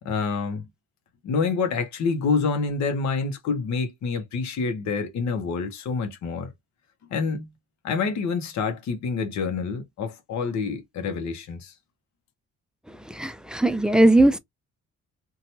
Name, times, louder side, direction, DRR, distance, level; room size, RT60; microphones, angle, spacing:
voice 1, 0.0-0.7 1.2-6.5 7.1-7.5 7.8-11.7, left 4 dB, 65° left, 0.8 m, -27 dB
voice 2, 12.9-14.4, right 1 dB, 5° right, 0.3 m, -19 dB
2.8 x 2.3 x 2.8 m
cardioid pair, 90°, 30 cm